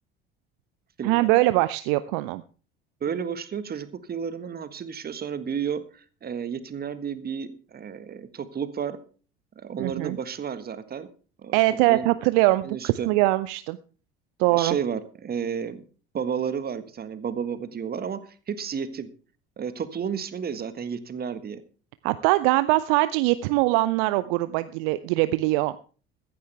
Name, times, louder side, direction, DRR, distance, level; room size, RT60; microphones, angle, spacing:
voice 1, 1.0-2.4 9.8-10.2 11.5-13.8 14.4-14.8 22.0-25.7, right 18 dB, 55° right, 15 dB, 0.7 m, -22 dB
voice 2, 3.0-9.0 9.5-11.1 11.4-11.6 11.9-12.1 12.6-13.1 14.5-15.8 16.1-19.1 19.6-21.6, right 7 dB, 30° right, 13 dB, 1.6 m, -32 dB
15.5 x 14.0 x 3.4 m, 0.38 s
figure-of-eight pair, 60°, 30 cm